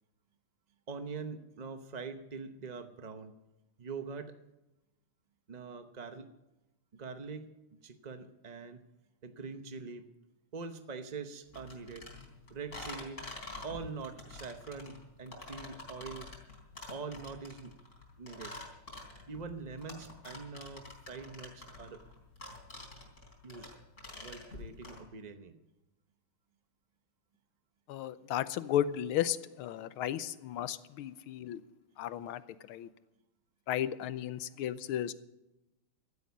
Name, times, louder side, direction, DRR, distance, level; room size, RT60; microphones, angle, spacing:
voice 1, 0.9-3.3 3.8-4.3 5.5-6.3 6.9-8.8 9.2-10.1 10.5-12.1 12.5-13.2 13.6-16.3 16.9-17.7 18.2-18.6 19.3-22.0 23.4-23.7 24.2-25.5, right 5 dB, 70° right, 7 dB, 0.4 m, -43 dB
sound 1, 11.5-25.0, left 2 dB, 35° left, 4.0 m, -47 dB
voice 2, 27.9-31.6 32.0-32.4 32.7-32.9 33.7-35.1, left 11 dB, 80° left, 15 dB, 1.6 m, -34 dB
15.5 x 13.0 x 5.3 m, 0.95 s
omnidirectional pair, 2.4 m